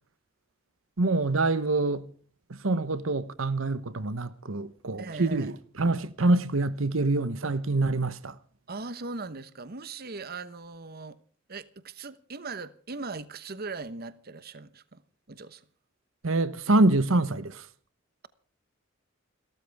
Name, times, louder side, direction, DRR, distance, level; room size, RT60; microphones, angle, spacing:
voice 1, 1.0-2.0 2.5-8.3 16.2-17.7, right 2 dB, 85° right, 1.0 m, -26 dB
voice 2, 5.0-5.6 8.7-11.2 11.5-15.0 15.3-15.6, right 3 dB, 50° right, 1.0 m, -39 dB
29.0 x 13.5 x 3.5 m
head